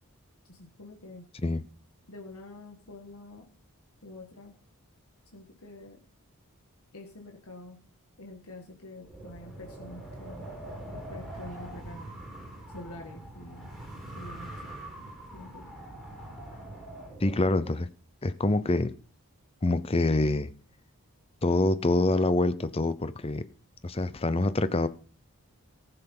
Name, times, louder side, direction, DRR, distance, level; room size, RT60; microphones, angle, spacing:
voice 1, 0.5-1.3 2.1-3.5 4.0-4.6 5.3-6.0 6.9-7.8 8.2-10.5 10.9-12.1 12.7-13.7 14.1-14.7 15.3-15.7, left 2 dB, 75° left, 1.6 m, -47 dB
Wind, 9.0-17.7, right 1 dB, ahead, 4.5 m, -43 dB
voice 2, 17.2-17.9 18.2-18.9 19.6-20.5 21.4-23.5 23.8-24.9, left 2 dB, 25° left, 0.6 m, -25 dB
14.5 x 6.8 x 5.4 m
head